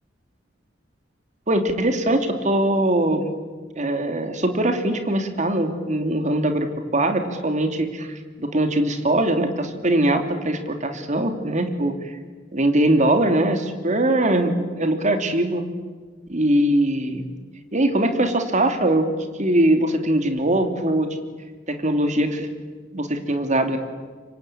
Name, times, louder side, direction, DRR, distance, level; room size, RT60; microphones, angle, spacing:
voice 1, 1.5-3.3 3.7-12.1 12.5-15.6 16.3-17.3 17.7-19.1 19.4-21.1 21.7-22.5 22.9-23.8, right 1 dB, 40° right, 6 dB, 2.9 m, -21 dB
27.0 x 24.5 x 8.8 m, 1.4 s
head